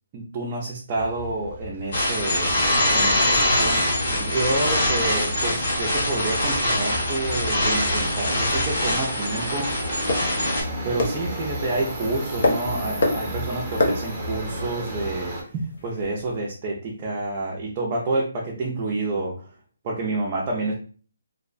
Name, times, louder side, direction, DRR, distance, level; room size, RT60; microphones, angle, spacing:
voice 1, 0.1-9.7 10.8-19.5 19.8-20.7, right 2 dB, 25° right, -3 dB, 0.4 m, -29 dB
Subway metro underground, 0.9-15.4, equal, 5° right, 0.8 m, -33 dB
sound 1, 1.9-10.6, left 1 dB, 45° left, 1.0 m, -23 dB
sound 2, 7.5-16.4, left 2 dB, 60° left, 0.7 m, -30 dB
2.6 x 2.0 x 2.4 m, 0.40 s
hypercardioid pair, 165°, 0 cm